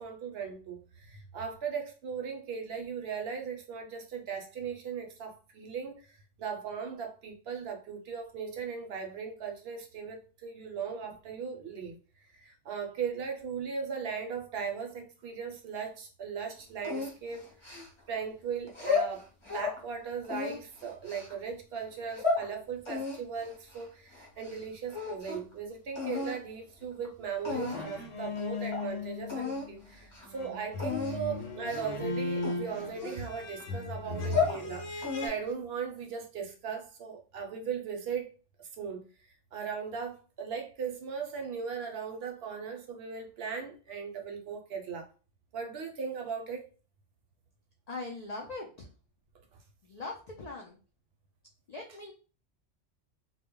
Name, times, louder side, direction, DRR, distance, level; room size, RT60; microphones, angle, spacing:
voice 1, 0.0-12.0 12.3-17.8 18.1-19.3 19.5-38.3 38.6-39.1 39.5-45.1 45.5-46.7, right 6 dB, 65° right, 0.7 m, -38 dB
sound 1, 16.8-18.2 18.7-19.8 20.2-21.3 21.9-22.5 22.9-24.6 24.9-25.5 26.0-26.4 27.0-27.1 27.4-28.0 28.4-28.5 28.7-28.9 29.3-29.7 30.0-30.3 30.8-31.2 31.7-32.0 32.4-33.6 34.1-34.6 35.0-35.5, left 4 dB, 30° left, 0.6 m, -33 dB
sound 2, 27.5-29.9 30.3-35.3, left 2 dB, 90° left, 1.0 m, -37 dB
voice 2, 47.9-48.9 49.8-50.8 51.7-52.1, left 3 dB, 70° left, 0.3 m, -41 dB
2.1 x 2.0 x 3.6 m
omnidirectional pair, 1.2 m